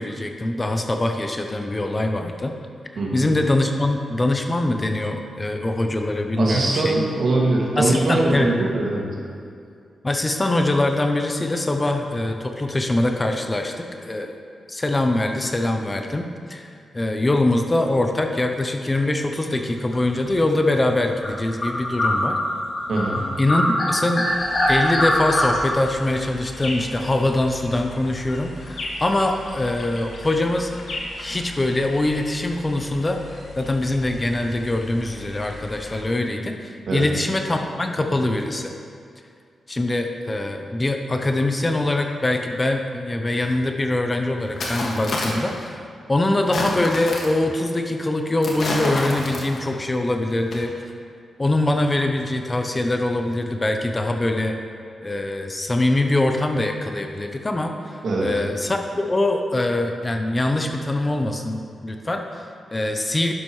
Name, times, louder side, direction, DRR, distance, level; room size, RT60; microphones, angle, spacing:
voice 1, 0.0-2.5 3.1-6.9 7.8-8.7 10.0-14.3 14.7-16.7 16.9-22.4 23.4-24.3 24.7-30.7 31.2-33.2 33.6-38.7 39.7-45.8 46.1-50.8 51.4-54.6 55.0-63.3, left 2 dB, 20° left, 4 dB, 0.6 m, -23 dB
voice 2, 3.0-3.3 6.4-9.0 22.9-23.3 36.9-37.1 58.0-58.3, right 2 dB, 60° right, -3 dB, 2.1 m, -22 dB
sound 1, 19.9-20.3 20.8-20.9 21.2-23.2 23.5-25.5, left 1 dB, 35° left, 2.4 m, -22 dB
sound 2, 24.2-36.0, left 1 dB, 75° left, 1.9 m, -38 dB
sound 3, 43.5-43.6 44.4-45.6 46.4-47.4 48.4-49.7 50.4-50.5, left 2 dB, 60° left, 1.8 m, -28 dB
11.5 x 11.0 x 3.2 m, 2.3 s
wide cardioid pair, 150°, 0 cm